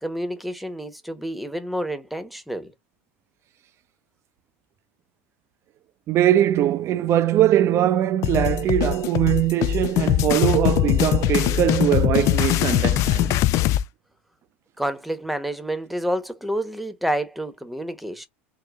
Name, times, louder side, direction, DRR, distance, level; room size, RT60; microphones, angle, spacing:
voice 1, 0.0-2.7 14.8-18.3, right 1 dB, ahead, 1.0 m, -29 dB
voice 2, 6.1-13.4, right 12 dB, 45° right, 0.6 m, -21 dB
sound 1, 8.2-13.8, left 14 dB, 50° left, 0.4 m, -21 dB
3.8 x 2.6 x 3.6 m
hypercardioid pair, 90°, 7 cm